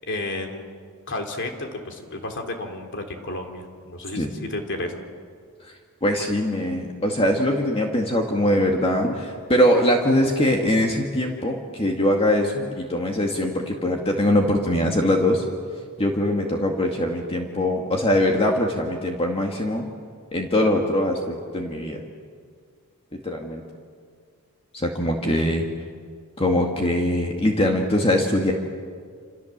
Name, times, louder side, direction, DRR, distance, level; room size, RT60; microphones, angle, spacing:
voice 1, 0.1-0.7 1.1-5.0, left 2 dB, 55° left, 4 dB, 3.3 m, -32 dB
voice 2, 6.0-15.5 16.0-19.9 20.3-22.0 23.2-23.6 24.7-25.6 26.4-28.5, left 1 dB, 25° left, 1 dB, 2.0 m, -22 dB
28.5 x 28.0 x 7.4 m, 2.1 s
head